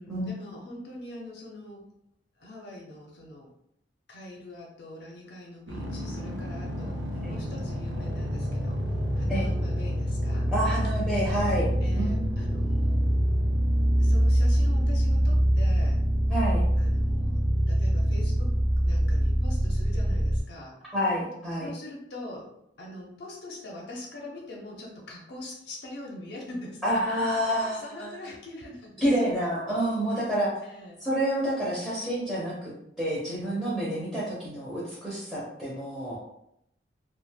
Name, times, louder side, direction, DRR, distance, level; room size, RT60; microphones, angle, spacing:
voice 1, 0.0-1.8 2.4-3.5 4.1-7.0 7.3-8.8 9.1-10.5 11.8-13.0 14.0-16.0 16.8-17.4 17.7-20.7 21.6-22.5 22.8-29.0 30.2-30.3 30.6-31.0, left 1 dB, 65° left, -2 dB, 0.6 m, -43 dB
sound 1, 5.7-20.4, equal, 85° right, 0.6 m, -25 dB
voice 2, 10.5-11.7 12.0-12.2 16.3-16.6 20.9-21.7 26.8-28.1 29.0-30.5 31.0-32.7 33.0-36.2, equal, 5° right, -8 dB, 0.6 m, -28 dB
2.4 x 2.1 x 3.3 m, 0.78 s
head